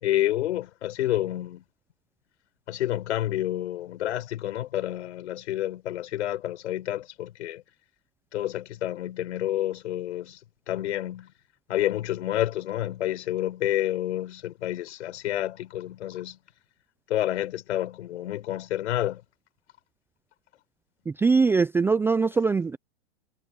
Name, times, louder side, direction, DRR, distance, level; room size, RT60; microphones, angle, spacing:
voice 1, 0.0-1.6 2.7-7.6 8.3-10.4 10.7-11.3 11.7-16.4 17.1-19.2, left 13 dB, 70° left, 5.1 m, -29 dB
voice 2, 21.1-22.8, right 4 dB, 5° right, 0.5 m, -22 dB
hypercardioid pair, 130°, 36 cm